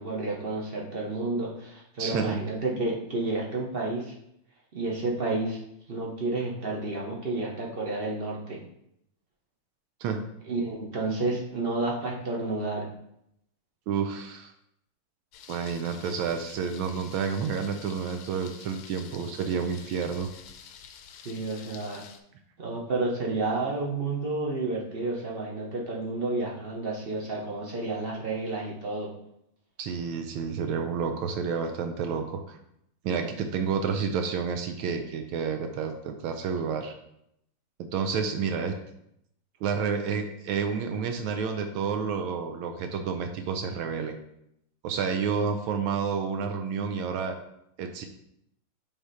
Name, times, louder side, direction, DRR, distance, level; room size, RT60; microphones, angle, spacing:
voice 1, 0.0-4.1 4.7-5.6 5.9-8.6 10.5-12.9 21.2-22.0 22.6-29.1, right 2 dB, 50° right, -2 dB, 0.7 m, -30 dB
voice 2, 2.0-2.4 10.0-10.2 13.9-14.5 15.5-20.3 29.8-32.6 33.0-36.9 37.8-38.7 39.6-44.2 44.8-47.3 47.8-48.1, right 6 dB, 80° right, 6 dB, 1.4 m, -30 dB
Thunder, 15.3-22.2, left 7 dB, 90° left, 1.5 m, -48 dB
7.2 x 3.6 x 4.1 m, 0.77 s
omnidirectional pair, 2.3 m